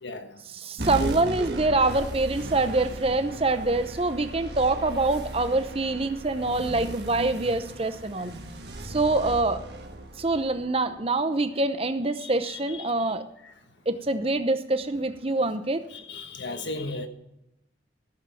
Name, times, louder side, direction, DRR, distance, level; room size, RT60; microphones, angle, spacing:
voice 1, 0.0-0.4 12.2-12.9 13.4-13.5 15.9-17.1, left 2 dB, 70° left, 1.3 m, -36 dB
voice 2, 0.5-8.3 8.8-9.6 10.2-13.2 13.9-15.8, right 2 dB, 30° right, 0.7 m, -25 dB
sound 1, 0.8-11.6, right 1 dB, 60° right, 1.5 m, -37 dB
14.5 x 7.5 x 5.7 m
head